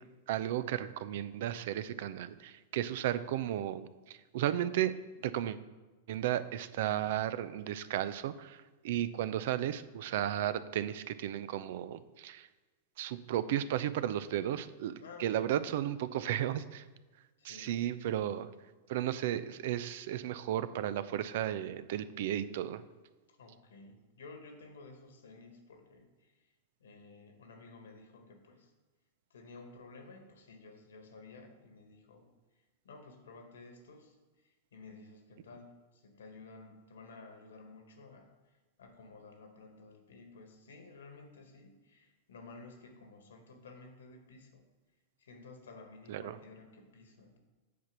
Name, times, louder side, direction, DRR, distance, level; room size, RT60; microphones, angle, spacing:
voice 1, 0.3-4.9 5.2-5.6 6.1-12.5 13.0-16.9 17.4-18.5 18.9-22.8 46.1-46.4, right 11 dB, 65° right, 15 dB, 0.5 m, -34 dB
voice 2, 15.0-15.5 17.4-17.7 23.3-26.5 26.8-28.7 29.3-32.3 32.8-34.2 34.4-38.3 38.8-44.6 45.2-47.4, left 3 dB, 80° left, 5 dB, 1.5 m, -53 dB
8.2 x 4.5 x 6.1 m, 1.2 s
hypercardioid pair, 105°, 0 cm